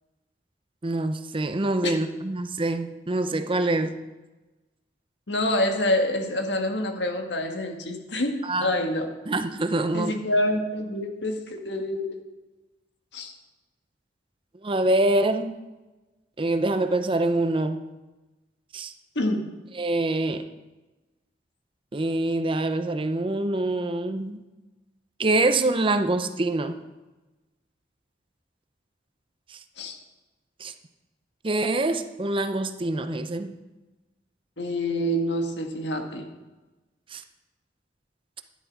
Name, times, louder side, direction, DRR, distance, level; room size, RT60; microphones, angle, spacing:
voice 1, 0.8-4.0 8.4-8.7 9.3-10.1 14.6-15.5 16.4-17.9 18.7-18.9 19.7-20.4 21.9-24.4 25.2-26.8 29.5-29.6 30.6-30.7 31.4-33.5 37.1-37.2, right 2 dB, 30° right, 9 dB, 0.6 m, -25 dB
voice 2, 5.3-9.1 9.9-12.1 13.1-13.3 19.1-19.4 29.8-30.0 34.6-36.2, left 1 dB, 70° left, 4 dB, 1.7 m, -26 dB
12.5 x 10.5 x 4.7 m, 1.1 s
head